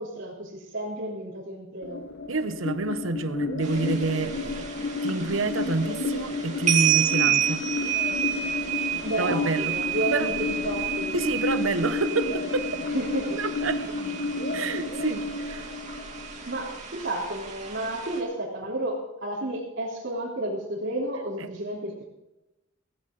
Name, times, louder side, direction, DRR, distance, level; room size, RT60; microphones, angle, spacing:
voice 1, 0.0-2.0 9.0-11.1 12.9-13.3 16.5-22.0, right 1 dB, 60° right, 3.7 m, -32 dB
sound 1, 1.8-16.8, left 3 dB, 55° left, 1.2 m, -32 dB
voice 2, 2.3-4.7 5.0-7.7 9.2-9.8 10.1-10.3 11.1-12.8 13.4-14.0 14.5-15.7 21.4-21.5, right 3 dB, 80° right, 0.9 m, -28 dB
sound 2, 3.6-18.2, right 10 dB, 35° right, 2.6 m, -31 dB
16.5 x 15.5 x 3.9 m
head